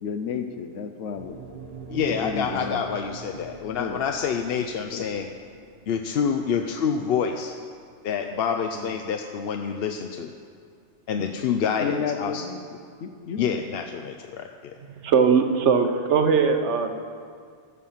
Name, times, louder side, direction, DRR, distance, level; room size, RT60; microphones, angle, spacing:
voice 1, 0.0-1.4 2.2-2.8 3.8-4.0 4.9-5.1 8.7-9.1 11.2-11.4 11.8-12.6 13.0-13.6, left 6 dB, 90° left, 7 dB, 1.0 m, -32 dB
sound 1, 1.1-9.4, right 4 dB, 35° right, 0.8 m, -43 dB
voice 2, 1.9-5.3 5.9-7.6 8.0-10.3 11.1-12.4 13.4-14.7, left 7 dB, 65° left, 5 dB, 0.7 m, -27 dB
voice 3, 15.0-17.0, right 5 dB, 75° right, 6 dB, 1.0 m, -20 dB
14.0 x 7.3 x 5.6 m, 2.2 s
omnidirectional pair, 1.2 m